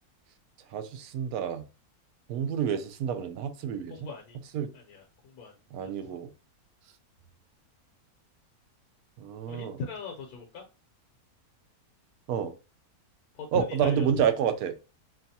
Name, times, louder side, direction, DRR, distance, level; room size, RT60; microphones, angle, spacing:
voice 1, 0.7-1.6 2.3-3.9 4.5-4.7 5.7-6.3 9.2-9.8 12.3-12.5 13.5-14.7, right 8 dB, 75° right, 1.0 m, -29 dB
voice 2, 3.9-4.4 4.7-6.2 9.5-10.6 13.3-14.3, left 4 dB, 75° left, 1.2 m, -40 dB
5.4 x 2.3 x 2.7 m
omnidirectional pair, 1.6 m